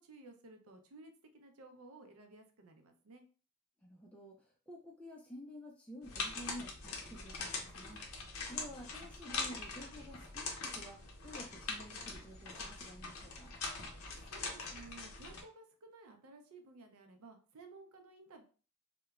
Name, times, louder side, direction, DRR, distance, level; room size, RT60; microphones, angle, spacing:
voice 1, 0.0-3.2 14.3-18.4, right 3 dB, 85° right, 5 dB, 0.5 m, -56 dB
voice 2, 3.8-8.0 8.5-13.5, equal, 5° left, -2 dB, 0.3 m, -51 dB
sound 1, 6.0-15.4, left 4 dB, 80° left, 0.6 m, -43 dB
2.9 x 2.1 x 2.3 m, 0.38 s
head